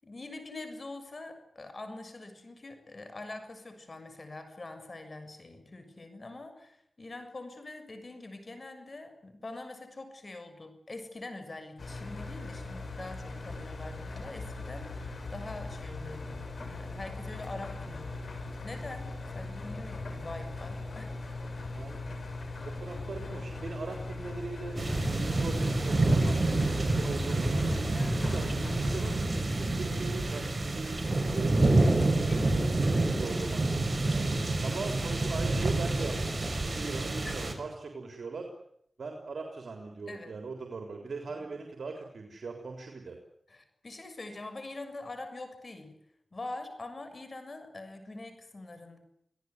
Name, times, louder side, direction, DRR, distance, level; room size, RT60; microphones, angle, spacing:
voice 1, 0.0-18.2 18.6-21.1 26.4-26.6 27.9-28.4 28.8-29.0 32.3-33.2 37.2-37.4 40.1-40.3 41.3-41.5 43.5-45.9 46.3-49.0, left 2 dB, 50° left, 8 dB, 7.0 m, -44 dB
Engine, 11.8-29.2, left 2 dB, 70° left, 6.9 m, -39 dB
voice 2, 21.7-22.1 22.6-29.2 29.7-31.0 31.3-33.7 34.0-34.3 34.6-38.5 39.0-43.2, right 4 dB, 75° right, 3 dB, 3.8 m, -40 dB
sound 1, 24.8-37.5, right 2 dB, 40° right, 6.0 m, -28 dB
27.0 x 17.5 x 9.7 m, 0.71 s
cardioid pair, 55°, 0 cm